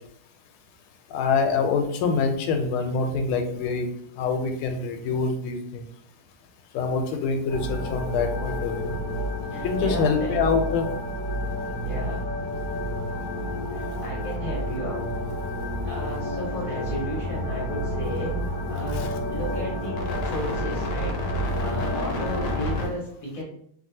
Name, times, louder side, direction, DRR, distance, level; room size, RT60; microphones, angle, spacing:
voice 1, 1.1-3.9 4.2-5.8 6.7-8.9 9.6-10.8 18.9-19.2, left 5 dB, 85° left, 5 dB, 1.4 m, -25 dB
sound 1, 7.5-22.9, equal, 70° left, 1.1 m, -29 dB
voice 2, 9.5-10.4 11.8-12.2 13.7-15.0 15.8-18.3 18.7-20.0 20.2-21.1 21.6-23.4, equal, 35° left, -5 dB, 0.5 m, -34 dB
3.2 x 2.4 x 2.6 m, 0.68 s
omnidirectional pair, 2.3 m